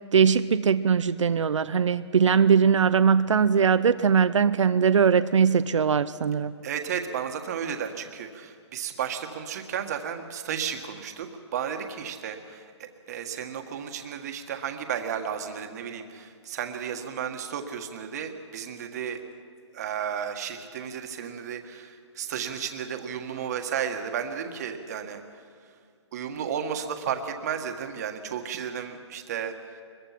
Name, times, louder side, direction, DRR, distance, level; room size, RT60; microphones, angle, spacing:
voice 1, 0.1-6.5, right 6 dB, 85° right, 12 dB, 0.7 m, -21 dB
voice 2, 6.6-12.6 13.1-19.2 19.7-25.2 26.1-29.8, right 8 dB, 35° right, 6 dB, 1.6 m, -33 dB
22.5 x 22.0 x 5.9 m, 2.2 s
hypercardioid pair, 165°, 15 cm